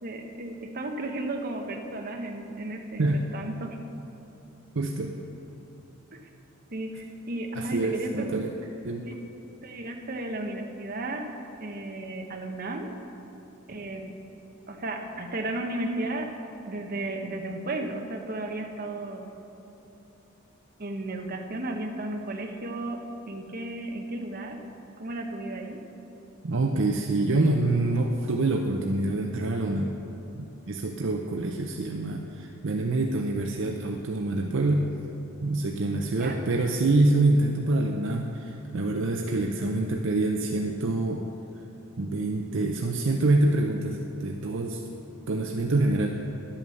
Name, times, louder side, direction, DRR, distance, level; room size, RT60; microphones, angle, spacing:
voice 1, 0.0-3.8 6.1-6.2 6.7-8.4 9.0-9.2 9.6-11.2 11.6-12.9 13.7-14.1 14.7-16.3 16.6-19.3 20.8-24.6 25.0-25.8 36.2-36.4, right 2 dB, 45° right, 3 dB, 1.0 m, -34 dB
voice 2, 4.7-5.1 7.5-9.2 26.4-29.9 30.3-34.9 35.4-41.2 42.0-44.8 45.3-46.2, right 2 dB, 65° right, 2 dB, 0.6 m, -26 dB
11.0 x 8.7 x 6.4 m, 2.9 s
head